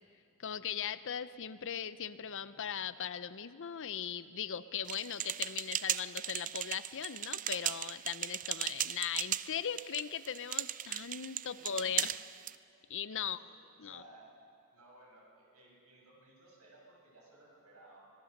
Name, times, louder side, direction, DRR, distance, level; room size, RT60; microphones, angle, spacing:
voice 1, 0.4-12.2 12.9-13.4 13.8-14.0, left 8 dB, 60° left, 14 dB, 0.7 m, -39 dB
sound 1, 4.9-12.6, right 11 dB, 35° right, 0.4 m, -37 dB
voice 2, 13.2-14.4 14.7-18.1, right 2 dB, 85° right, -2 dB, 6.8 m, -59 dB
25.5 x 19.0 x 6.6 m, 2.4 s
head